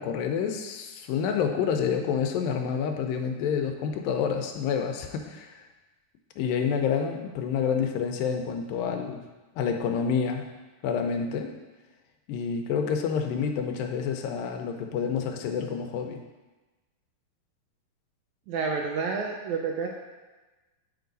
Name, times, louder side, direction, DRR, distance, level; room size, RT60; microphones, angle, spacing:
voice 1, 0.0-5.6 6.4-9.2 9.6-10.5 10.8-11.5 12.3-16.2, left 6 dB, 90° left, 4 dB, 2.5 m, -28 dB
voice 2, 18.5-19.9, right 5 dB, 80° right, 1 dB, 1.7 m, -29 dB
9.4 x 4.7 x 4.0 m, 1.2 s
omnidirectional pair, 3.9 m